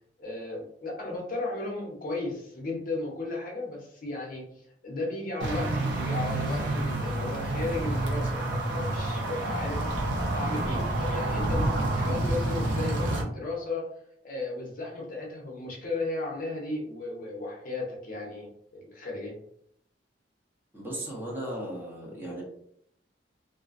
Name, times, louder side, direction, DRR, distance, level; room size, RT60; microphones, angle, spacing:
voice 1, 0.2-4.5 4.8-9.9 10.3-13.9 14.2-19.4, left 2 dB, 50° left, -1 dB, 0.6 m, -35 dB
sound 1, 5.4-13.2, right 1 dB, 85° right, 0.5 m, -28 dB
voice 2, 20.7-22.4, right 1 dB, 10° right, -3 dB, 0.6 m, -36 dB
2.4 x 2.1 x 2.4 m, 0.70 s
head